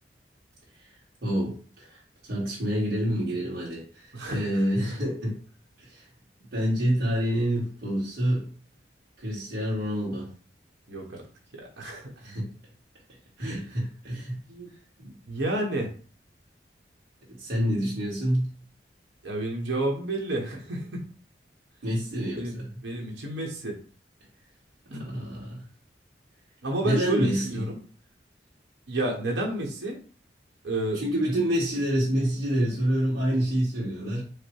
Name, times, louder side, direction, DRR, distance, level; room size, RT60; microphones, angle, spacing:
voice 1, 1.2-2.0 2.3-5.4 5.8-6.1 6.5-8.5 9.2-10.3 12.2-12.5 13.4-14.7 15.0-15.2 17.3-18.6 21.8-22.7 25.0-25.6 26.8-27.7 31.0-34.2, equal, 55° right, -8 dB, 1.8 m, -27 dB
voice 2, 10.9-11.2 11.5-12.1 13.4-13.5 15.3-15.9 19.2-21.0 22.4-22.5 22.8-23.8 24.9-25.0 26.6-27.8 28.9-30.0 30.6-31.0, right 1 dB, 90° right, 0 dB, 1.2 m, -30 dB
5.0 x 2.1 x 4.7 m, 0.39 s
head